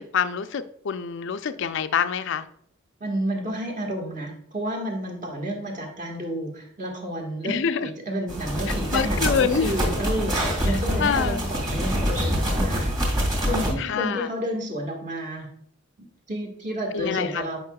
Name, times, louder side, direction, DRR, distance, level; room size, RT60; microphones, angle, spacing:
voice 1, 0.0-2.5 7.4-7.9 8.7-9.7 10.7-11.4 13.8-14.3 16.9-17.4, left 6 dB, 65° left, 11 dB, 0.4 m, -26 dB
voice 2, 3.0-13.0 13.4-15.5 16.3-17.6, equal, 40° right, 1 dB, 1.6 m, -30 dB
sound 1, 8.3-13.7, equal, 20° right, 2.1 m, -25 dB
8.4 x 5.5 x 2.3 m, 0.68 s
head